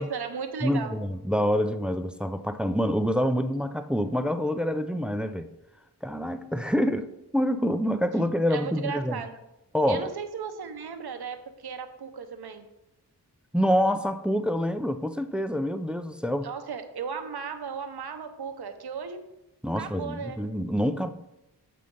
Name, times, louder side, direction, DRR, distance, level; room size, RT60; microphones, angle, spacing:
voice 1, 0.0-0.9 8.5-9.3 9.9-12.7 16.4-19.2 19.8-20.4, right 6 dB, 70° right, 0.8 m, -36 dB
voice 2, 0.6-5.5 6.0-9.2 9.7-10.1 13.5-16.5 19.6-21.1, equal, 5° right, 0.3 m, -26 dB
6.6 x 5.2 x 3.7 m
cardioid pair, 50°, 41 cm